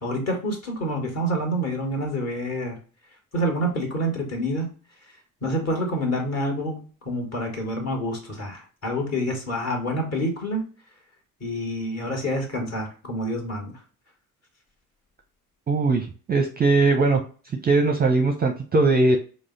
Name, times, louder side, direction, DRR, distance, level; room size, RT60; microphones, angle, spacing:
voice 1, 0.0-2.8 3.3-4.7 5.4-10.6 11.4-13.7, equal, 35° left, 1 dB, 1.6 m, -27 dB
voice 2, 15.7-17.2 17.6-19.2, right 3 dB, 20° right, 3 dB, 0.6 m, -20 dB
4.8 x 2.1 x 3.9 m, 0.38 s
hypercardioid pair, 55°, 44 cm